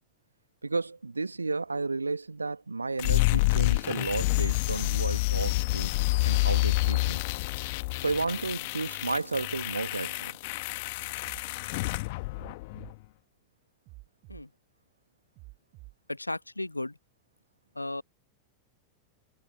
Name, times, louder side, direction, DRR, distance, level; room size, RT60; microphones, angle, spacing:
voice 1, 0.6-5.9 6.2-7.2 8.0-10.4, right 3 dB, 80° right, 1.6 m, -32 dB
sound 1, 3.0-13.0, left 23 dB, 50° left, 1.5 m, -28 dB
sound 2, 11.2-11.4 12.3-12.9 13.8-14.4 15.3-15.9, right 25 dB, 40° right, 5.9 m, -49 dB
voice 2, 16.1-17.0 17.7-18.0, left 2 dB, 85° left, 1.1 m, -35 dB
figure-of-eight pair, 90°, 0 cm